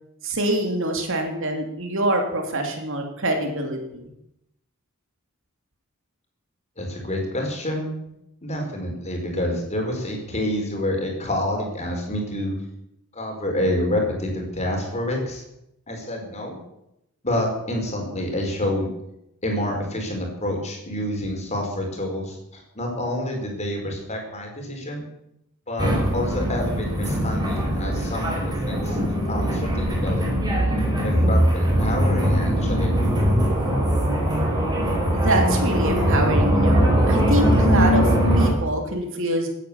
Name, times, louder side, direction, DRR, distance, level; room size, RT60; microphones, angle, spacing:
voice 1, 0.2-4.1 35.1-39.5, right 1 dB, 60° right, 3 dB, 3.1 m, -25 dB
voice 2, 6.8-7.9 8.4-12.5 13.1-15.4 15.9-16.6 17.2-18.9 19.4-25.0 25.7-29.0 29.3-30.3 31.0-32.9, left 1 dB, 30° left, 1 dB, 4.7 m, -28 dB
sound 1, 25.8-38.5, equal, 20° right, 5.1 m, -21 dB
17.0 x 9.8 x 7.2 m, 0.81 s
head